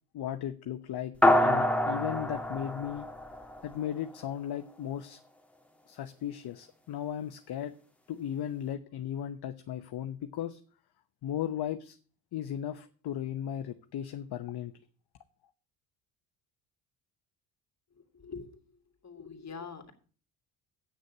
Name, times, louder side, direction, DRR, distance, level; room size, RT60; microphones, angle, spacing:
voice 1, 0.1-1.1 1.4-3.1 3.6-5.2 5.9-7.7 8.1-10.6 11.2-12.0 12.3-14.7, left 10 dB, 50° left, 8 dB, 0.9 m, -36 dB
sound 1, 1.2-3.9, left 1 dB, ahead, 1.9 m, -26 dB
voice 2, 18.1-18.6 19.0-19.9, left 5 dB, 30° left, 5 dB, 2.5 m, -43 dB
8.5 x 6.4 x 8.3 m, 0.42 s
hypercardioid pair, 60°, 50 cm